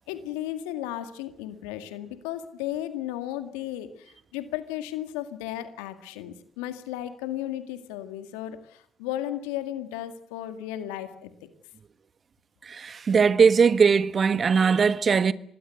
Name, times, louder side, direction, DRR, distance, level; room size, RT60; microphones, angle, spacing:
voice 1, 0.1-11.5, left 12 dB, 85° left, 1.9 m, -34 dB
voice 2, 12.6-15.3, right 5 dB, 45° right, 1.4 m, -20 dB
26.0 x 20.0 x 8.1 m
hypercardioid pair, 45°, 0 cm